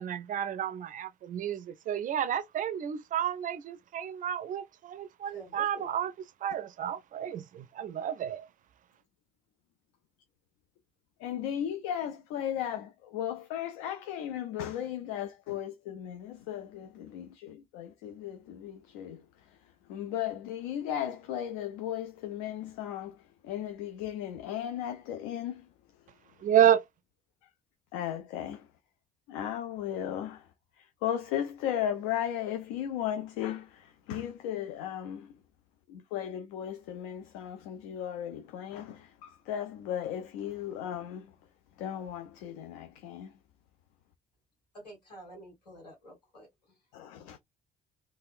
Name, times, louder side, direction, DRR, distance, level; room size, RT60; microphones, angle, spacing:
voice 1, 0.0-6.1 6.4-8.5 26.4-26.8, right 10 dB, 40° right, 0.4 m, -30 dB
voice 2, 5.3-5.9 44.7-46.8, equal, 85° left, 1.2 m, -49 dB
voice 3, 11.2-19.6 19.9-25.7 27.9-28.7 29.3-30.5 30.8-35.3 35.9-41.3 41.8-43.3 46.9-47.4, left 10 dB, 65° left, 0.5 m, -36 dB
3.4 x 2.2 x 2.4 m
figure-of-eight pair, 45°, 20 cm